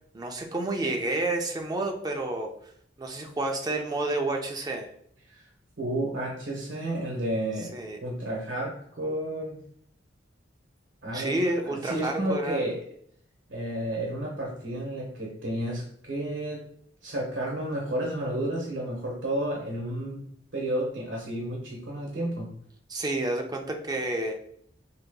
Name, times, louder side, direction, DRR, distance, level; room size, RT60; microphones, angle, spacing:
voice 1, 0.1-2.5 3.0-4.9 7.7-8.0 11.1-12.6 22.9-24.3, right 2 dB, 20° right, 2 dB, 0.5 m, -29 dB
voice 2, 5.8-7.7 8.0-9.6 11.0-11.3 11.6-12.8 13.5-16.6 17.0-20.2 20.5-22.5, right 1 dB, 70° right, -3 dB, 0.9 m, -31 dB
4.8 x 2.8 x 2.3 m, 0.66 s
head